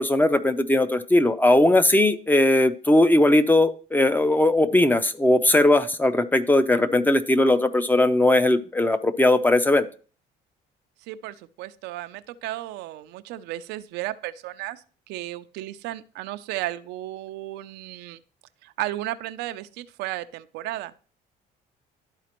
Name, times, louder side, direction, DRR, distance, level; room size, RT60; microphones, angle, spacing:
voice 1, 0.0-9.9, left 1 dB, 10° left, 11 dB, 0.5 m, -19 dB
voice 2, 11.0-18.2 18.6-20.9, right 15 dB, 90° right, 11 dB, 0.5 m, -34 dB
12.0 x 4.1 x 3.0 m, 0.40 s
cardioid pair, 110°, 17 cm